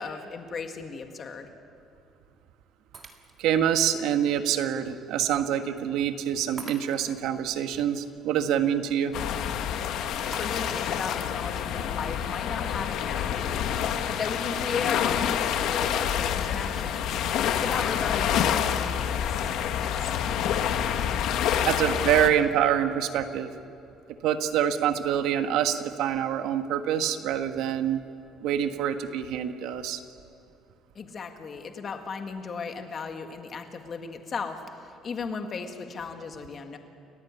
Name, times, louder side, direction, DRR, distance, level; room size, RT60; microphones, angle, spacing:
voice 1, 0.0-1.5 10.3-17.2 17.5-19.5 19.7-20.2 31.0-36.8, left 5 dB, 30° left, 5 dB, 1.9 m, -36 dB
Shatter, 2.9-3.6 4.2-4.3 6.6-7.3 10.3-11.1, right 4 dB, 25° right, 1.9 m, -45 dB
voice 2, 3.4-9.1 21.7-23.5 24.2-28.0 28.4-30.0, right 9 dB, 70° right, 7 dB, 1.5 m, -26 dB
sound 1, 9.1-22.3, left 9 dB, 60° left, 1.4 m, -27 dB
30.0 x 14.5 x 9.6 m, 2.6 s
cardioid pair, 175°, 0 cm